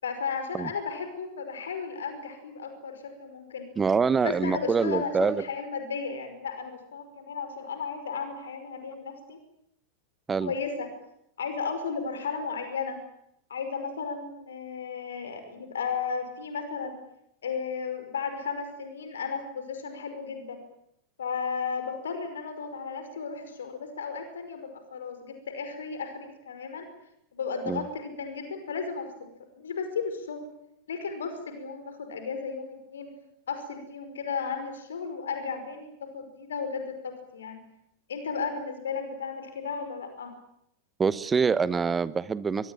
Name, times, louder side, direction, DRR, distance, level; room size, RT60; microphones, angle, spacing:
voice 1, 0.0-3.7 4.2-9.4 10.4-10.9 11.4-13.0 13.5-17.0 17.4-20.6 21.2-26.9 27.3-30.5 30.9-33.1 33.5-37.6 38.1-40.3, left 5 dB, 65° left, 8 dB, 5.4 m, -34 dB
voice 2, 3.8-5.4 10.3-10.5 27.7-27.8 41.0-42.7, right 5 dB, 15° right, 17 dB, 1.2 m, -25 dB
24.0 x 23.5 x 9.2 m, 0.77 s
figure-of-eight pair, 90°, 0 cm